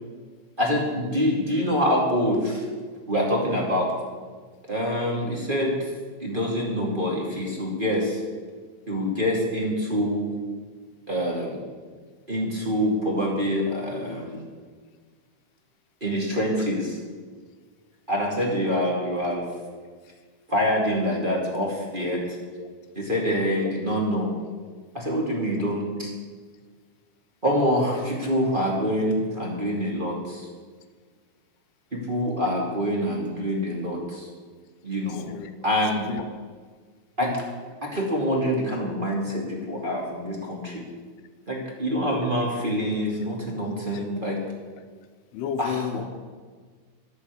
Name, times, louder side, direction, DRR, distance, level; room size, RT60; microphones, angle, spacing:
voice 1, 0.6-2.6 3.1-3.9 4.7-5.7 6.2-8.2 8.9-10.2 11.1-11.6 12.3-14.4 16.0-17.0 18.1-19.4 20.5-22.4 22.9-24.3 24.9-26.1 27.4-30.5 31.9-34.3 34.8-35.2 35.6-36.0 37.2-37.3 37.8-40.8 41.5-44.4 45.6-46.0, equal, 20° right, -2 dB, 1.7 m, -25 dB
voice 2, 23.3-23.7 35.1-35.5 36.1-36.4 43.9-44.1 45.3-46.0, left 8 dB, 85° left, 8 dB, 2.9 m, -33 dB
13.0 x 8.3 x 8.2 m, 1.5 s
omnidirectional pair, 4.5 m